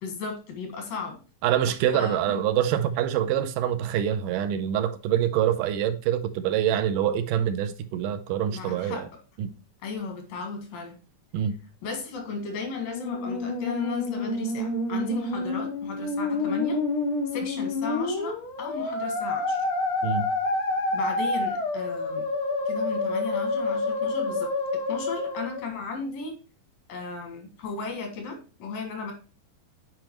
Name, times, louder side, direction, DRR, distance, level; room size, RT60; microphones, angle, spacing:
voice 1, 0.0-1.2 1.9-2.4 8.5-9.1 9.8-11.0 11.8-16.8 17.3-19.6 20.9-22.3 22.7-26.4 26.9-29.1, left 4 dB, 85° left, 3.4 m, -35 dB
voice 2, 1.4-9.0 9.4-9.5 11.3-11.5 20.0-20.2, right 10 dB, 80° right, 2.2 m, -25 dB
Musical instrument, 12.7-25.7, left 2 dB, 50° left, 1.9 m, -28 dB
9.0 x 4.5 x 3.0 m
omnidirectional pair, 3.8 m